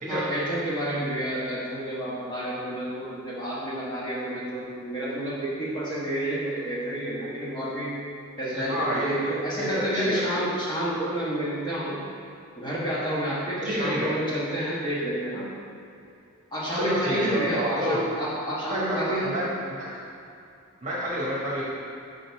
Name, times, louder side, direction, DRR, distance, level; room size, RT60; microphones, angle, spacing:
voice 1, 0.1-8.0 8.4-12.0 12.6-15.5 16.5-19.4, right 1 dB, 20° left, -9 dB, 1.2 m, -29 dB
voice 2, 8.5-9.1 9.6-10.2 13.6-14.1 16.7-18.0 18.7-19.4 19.7-19.9 20.8-21.6, equal, 35° right, -7 dB, 1.4 m, -28 dB
5.4 x 3.9 x 4.6 m, 2.6 s
head